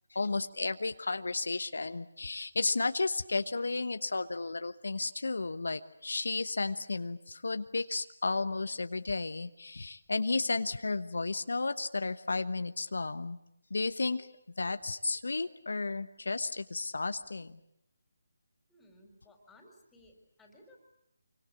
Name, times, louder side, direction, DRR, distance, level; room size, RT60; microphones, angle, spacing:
voice 1, 0.1-13.4 13.7-14.3 14.6-17.6, left 3 dB, 75° left, 10 dB, 1.1 m, -33 dB
voice 2, 18.7-20.8, left 1 dB, 5° left, 2 dB, 4.5 m, -59 dB
25.5 x 24.5 x 8.6 m, 0.75 s
figure-of-eight pair, 160°, 0 cm